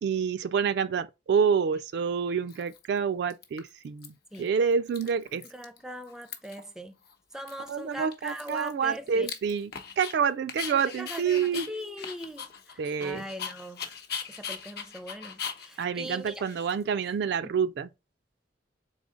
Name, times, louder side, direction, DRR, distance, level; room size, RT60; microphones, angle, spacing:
voice 1, 0.0-4.1 4.4-5.4 7.7-11.7 12.8-13.2 15.8-17.9, right 6 dB, 65° right, 0.3 m, -28 dB
Dog, 1.7-1.8 2.5-3.0 3.3-4.1 4.3-4.5 4.7-5.8 6.0-6.7 7.0-7.1 7.5-10.1 10.5-17.1, left 7 dB, 60° left, 0.8 m, -40 dB
voice 2, 5.4-6.9 7.3-9.3 10.7-13.9 14.2-16.4 17.4-17.6, equal, 5° right, 0.5 m, -41 dB
3.7 x 3.7 x 3.7 m
head